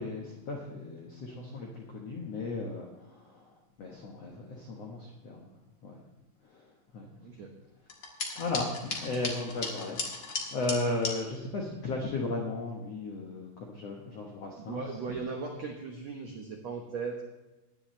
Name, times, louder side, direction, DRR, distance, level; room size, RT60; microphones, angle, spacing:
voice 1, 0.0-5.5 5.8-6.0 6.4-7.4 8.3-14.9, left 2 dB, 70° left, -1 dB, 1.5 m, -36 dB
voice 2, 7.2-7.5 14.6-17.2, right 4 dB, 80° right, 1 dB, 1.5 m, -37 dB
sound 1, 7.9-11.1, left 3 dB, 85° left, 0.9 m, -36 dB
18.0 x 10.5 x 3.3 m, 1.0 s
omnidirectional pair, 5.0 m